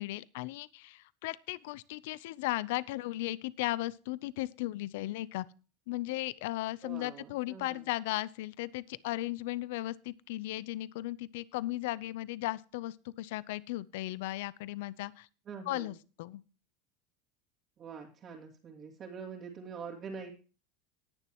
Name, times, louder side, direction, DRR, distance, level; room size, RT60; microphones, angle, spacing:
voice 1, 0.0-5.5 5.9-15.3 15.7-16.4, left 17 dB, 75° left, 20 dB, 0.5 m, -36 dB
voice 2, 6.8-7.8 15.5-16.0 17.8-20.3, right 5 dB, 35° right, -3 dB, 2.5 m, -45 dB
19.0 x 7.0 x 3.0 m, 0.35 s
supercardioid pair, 125°, 0 cm